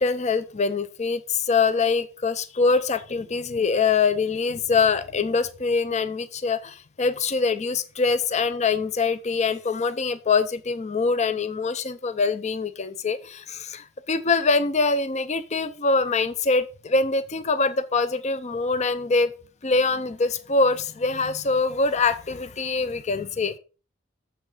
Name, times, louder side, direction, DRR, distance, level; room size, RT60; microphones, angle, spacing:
voice 1, 0.0-19.3 19.6-23.6, left 4 dB, 35° left, 12 dB, 0.5 m, -24 dB
7.3 x 5.8 x 5.4 m, 0.34 s
head